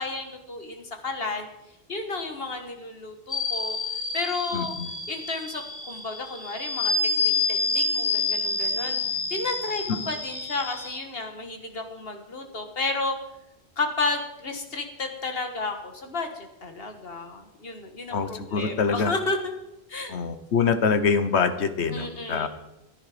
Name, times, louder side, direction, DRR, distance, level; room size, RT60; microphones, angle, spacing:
voice 1, 0.0-1.5 1.9-3.8 4.1-4.8 5.1-6.9 7.2-9.0 9.3-13.2 13.8-19.5 19.9-20.1 21.9-22.5, left 3 dB, 60° left, 5 dB, 1.8 m, -32 dB
sound 1, 3.3-11.0, left 3 dB, 25° left, 1.3 m, -28 dB
voice 2, 4.5-4.9 18.1-19.1 20.1-22.5, left 5 dB, 85° left, 10 dB, 1.3 m, -25 dB
14.5 x 10.5 x 5.0 m, 0.90 s
omnidirectional pair, 1.1 m